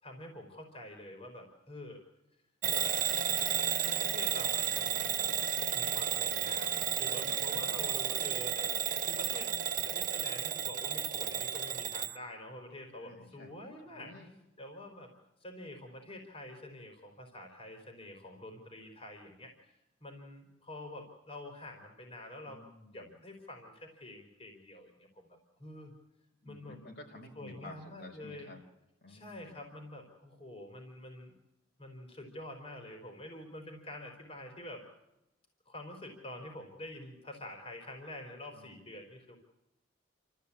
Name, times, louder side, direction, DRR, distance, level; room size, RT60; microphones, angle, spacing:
voice 1, 0.0-2.0 2.7-2.9 4.0-5.4 5.7-9.5 9.8-14.1 14.6-15.1 15.4-19.5 20.0-22.6 22.9-25.9 26.4-26.8 27.4-28.5 29.1-31.3 31.8-34.8 35.7-39.4, left 1 dB, 30° left, 3 dB, 4.2 m, -47 dB
Bell / Alarm, 2.6-12.2, right 9 dB, 45° right, 0.7 m, -32 dB
voice 2, 7.1-7.6 13.0-13.5 13.8-14.3 22.4-23.2 26.4-28.6 29.0-29.6 38.5-38.8, left 2 dB, 55° left, 1 dB, 4.9 m, -52 dB
28.5 x 14.0 x 8.5 m, 0.91 s
head